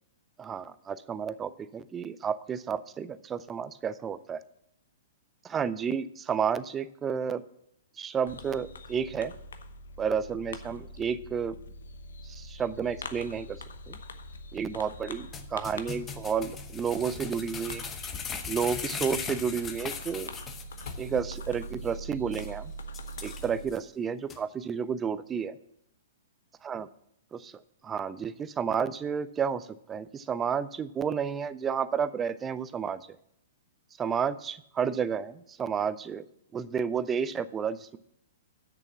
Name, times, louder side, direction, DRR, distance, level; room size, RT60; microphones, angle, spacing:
voice 1, 0.4-4.4 5.4-7.4 8.0-9.3 10.0-11.6 12.2-13.6 13.9-14.0 14.5-17.8 18.5-20.3 21.0-22.7 23.2-25.5 26.6-26.9 27.3-27.5 27.8-33.0 34.0-36.2 36.5-38.0, right 7 dB, 20° right, 16 dB, 0.5 m, -31 dB
Fireworks, 8.3-23.7, equal, 70° left, 0.8 m, -43 dB
sound 1, 15.3-21.1 21.4-21.5 21.9-22.0 22.3-22.5 22.9-23.8 24.3-24.4, left 6 dB, 20° left, 0.9 m, -38 dB
8.3 x 6.7 x 7.1 m, 0.74 s
figure-of-eight pair, 110°, 0 cm